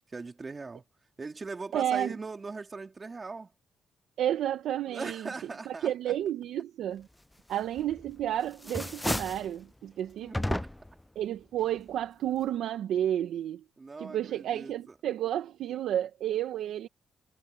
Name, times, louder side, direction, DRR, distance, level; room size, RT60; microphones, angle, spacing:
voice 1, 0.1-0.8 1.2-3.5 4.9-6.1 7.5-7.6 10.2-10.4 13.8-15.0, right 4 dB, 30° right, 3.4 m, -40 dB
voice 2, 1.7-2.1 4.2-5.3 5.7-7.1 7.5-10.6 11.1-13.6 14.0-16.9, right 11 dB, 75° right, 1.2 m, -31 dB
sound 1, 7.8-8.2 8.5-9.5 10.3-11.0, left 1 dB, 5° left, 0.4 m, -32 dB
cardioid pair, 90°, 0 cm